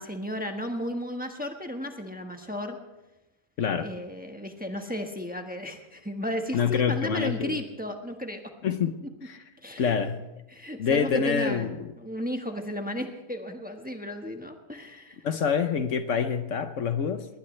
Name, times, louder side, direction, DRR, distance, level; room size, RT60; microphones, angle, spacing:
voice 1, 0.0-2.8 3.8-8.4 9.6-10.0 10.5-15.3, equal, 5° right, 4 dB, 1.2 m, -34 dB
voice 2, 6.5-7.6 8.6-9.0 9.2-9.4 9.8-10.2 10.8-11.9 15.2-17.3, left 6 dB, 70° left, 9 dB, 1.2 m, -26 dB
20.0 x 19.5 x 3.2 m, 1.0 s
omnidirectional pair, 1.4 m